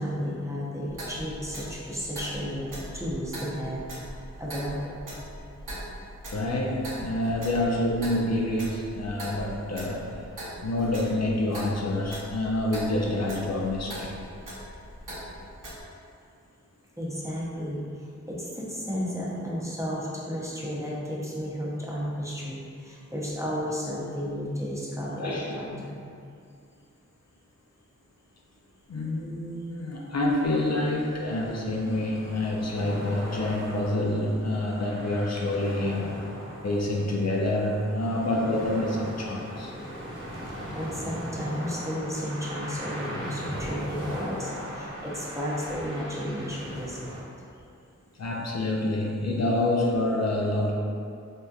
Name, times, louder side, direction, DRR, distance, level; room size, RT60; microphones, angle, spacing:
voice 1, 0.0-3.8 4.4-4.9 17.0-26.0 40.7-47.2, equal, 10° right, -6 dB, 0.6 m, -33 dB
Clock, 0.9-15.8, right 1 dB, 90° right, 0.7 m, -41 dB
voice 2, 6.3-10.2 10.6-14.1 25.2-25.8 28.9-36.2 36.6-39.7 48.2-50.7, left 1 dB, 60° left, -2 dB, 0.4 m, -27 dB
sound 1, 30.2-47.2, equal, 40° right, 0.9 m, -39 dB
3.4 x 2.7 x 2.3 m, 2.4 s
wide cardioid pair, 55°, 30 cm